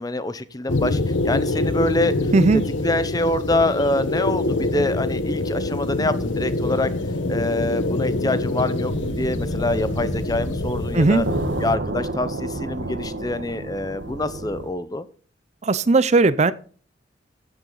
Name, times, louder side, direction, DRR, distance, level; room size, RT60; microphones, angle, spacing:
voice 1, 0.0-2.1 2.8-6.9 7.3-11.3 11.6-15.1, left 2 dB, 20° left, 13 dB, 0.7 m, -25 dB
sound 1, 0.7-11.8, left 2 dB, 85° left, 1.1 m, -25 dB
voice 2, 2.3-2.6 10.9-11.3 15.6-16.5, right 3 dB, 35° right, 16 dB, 0.5 m, -17 dB
sound 2, 8.9-14.7, right 2 dB, 75° right, 1.2 m, -31 dB
13.5 x 7.7 x 3.9 m, 0.43 s
head